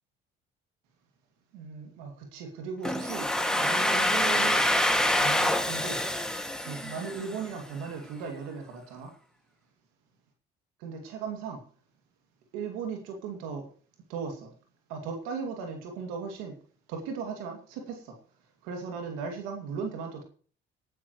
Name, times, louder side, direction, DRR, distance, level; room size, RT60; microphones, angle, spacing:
voice 1, 1.5-4.7 5.2-6.0 6.6-9.1 10.8-11.6 12.5-13.7 14.1-14.5 14.9-16.5 16.9-18.2 18.6-20.2, right 5 dB, 90° right, 2 dB, 2.5 m, -37 dB
Domestic sounds home sounds, 2.8-7.6, left 1 dB, 5° left, 2.2 m, -26 dB
19.0 x 12.0 x 3.2 m, 0.43 s
supercardioid pair, 70°, 21 cm